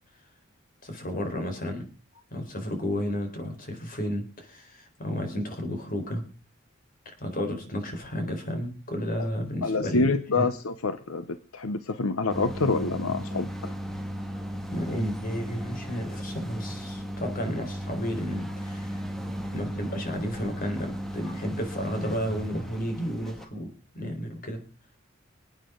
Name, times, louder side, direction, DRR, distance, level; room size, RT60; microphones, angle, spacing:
voice 1, 0.8-1.9 2.3-6.3 7.1-10.5 14.7-19.0 19.5-24.6, equal, 45° left, 5 dB, 4.2 m, -32 dB
voice 2, 9.6-13.7, left 3 dB, 75° left, 11 dB, 0.8 m, -27 dB
sound 1, 12.3-23.5, equal, ahead, 1.9 m, -36 dB
25.5 x 9.2 x 3.8 m, 0.34 s
head